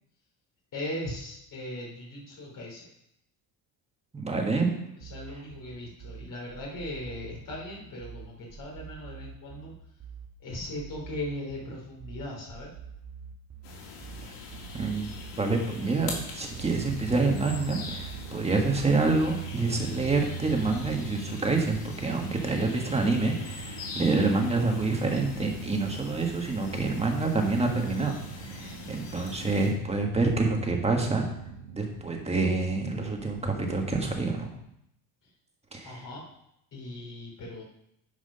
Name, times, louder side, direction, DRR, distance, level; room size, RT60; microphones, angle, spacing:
voice 1, 0.7-2.8 5.1-9.7 10.4-12.7 35.8-36.2 36.7-37.6, left 1 dB, 45° left, -2 dB, 3.3 m, -38 dB
voice 2, 4.1-4.7 14.7-15.1 15.4-31.3 31.7-34.5 35.7-36.0, right 3 dB, 15° right, 2 dB, 1.7 m, -27 dB
sound 1, 5.0-21.0, right 7 dB, 35° right, 1.5 m, -45 dB
sound 2, 13.6-29.7, left 4 dB, 85° left, 2.8 m, -43 dB
sound 3, 16.5-34.5, right 8 dB, 65° right, 1.5 m, -42 dB
10.0 x 5.0 x 5.6 m, 0.77 s
cardioid pair, 135°, 42 cm